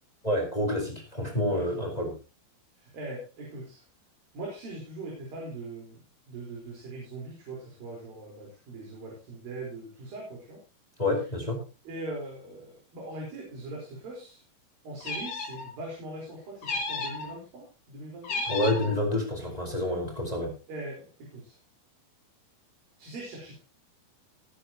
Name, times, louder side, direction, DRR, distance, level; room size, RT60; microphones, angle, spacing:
voice 1, 0.2-2.1 11.0-11.6 18.5-20.5, left 1 dB, 10° left, 1 dB, 4.1 m, -28 dB
voice 2, 1.5-1.9 2.7-3.9 4.3-6.0 6.3-10.6 11.8-14.4 14.8-18.5 20.7-21.6 23.0-23.6, right 2 dB, 70° right, -2 dB, 6.3 m, -41 dB
sound 1, 15.0-15.7 16.6-17.3 18.2-18.9, left 3 dB, 75° left, 6.1 m, -33 dB
20.5 x 9.6 x 3.0 m, 0.32 s
omnidirectional pair, 4.3 m